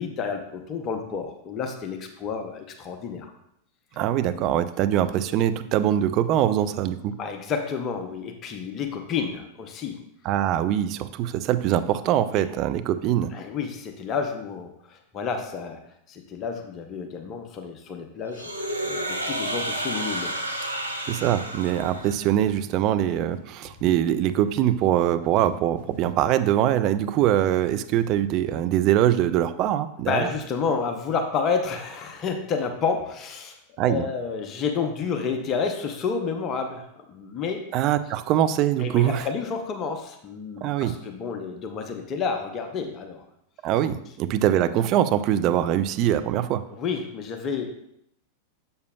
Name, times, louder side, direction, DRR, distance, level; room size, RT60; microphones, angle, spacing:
voice 1, 0.0-3.3 7.2-10.0 12.4-12.5 13.3-15.8 16.1-18.5 18.8-20.4 20.6-21.0 30.0-33.6 33.9-37.6 38.8-43.2 46.7-47.7, left 5 dB, 30° left, 5 dB, 0.7 m, -30 dB
voice 2, 4.0-7.2 10.2-13.3 21.1-30.3 33.8-34.0 37.7-39.3 40.6-41.0 43.6-46.6, right 11 dB, 40° right, 10 dB, 0.4 m, -23 dB
sound 1, 18.3-22.4, right 1 dB, 90° right, 0.7 m, -31 dB
sound 2, 21.9-26.8 27.2-28.2 28.5-28.6, left 5 dB, 50° left, 1.3 m, -49 dB
6.7 x 6.5 x 2.3 m, 0.74 s
figure-of-eight pair, 90°, 0 cm